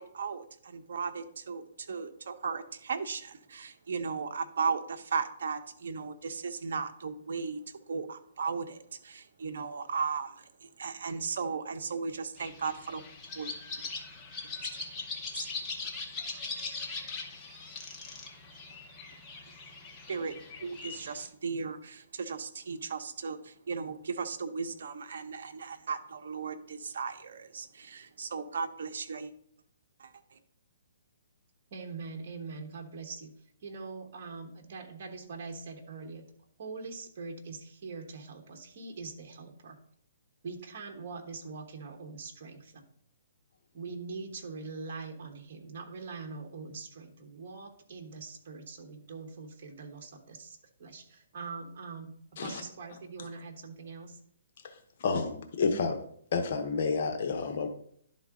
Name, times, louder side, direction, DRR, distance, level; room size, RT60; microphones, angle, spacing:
voice 1, 0.0-7.6 7.9-13.0 13.3-13.5 15.3-15.5 20.1-29.3 30.0-30.1, right 5 dB, 70° right, 8 dB, 0.8 m, -36 dB
sound 1, 12.4-21.3, left 3 dB, 15° left, 0.9 m, -41 dB
voice 2, 31.7-36.3 36.6-39.8 40.4-42.8 43.7-54.2, right 4 dB, 50° right, 3 dB, 1.3 m, -43 dB
voice 3, 55.0-56.0 56.3-57.7, left 4 dB, 50° left, 5 dB, 0.9 m, -29 dB
11.0 x 3.9 x 3.7 m, 0.64 s
hypercardioid pair, 160°, 0 cm